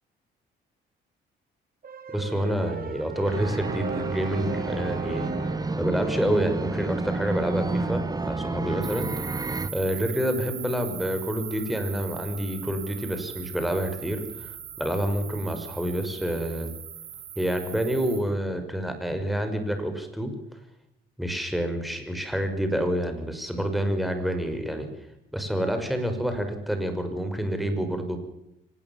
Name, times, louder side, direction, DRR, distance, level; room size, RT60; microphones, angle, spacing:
sound 1, 1.8-5.9, right 6 dB, 45° right, 2.7 m, -36 dB
voice 1, 2.1-5.3 5.8-9.1 9.7-16.7 17.4-20.3 21.2-24.9 25.3-28.2, equal, ahead, 6 dB, 5.9 m, -28 dB
sound 2, 3.2-9.7, right 3 dB, 20° right, 1.5 m, -30 dB
sound 3, 8.8-18.2, right 9 dB, 65° right, 6.6 m, -40 dB
24.5 x 19.5 x 7.4 m, 0.88 s
cardioid pair, 90°, 20 cm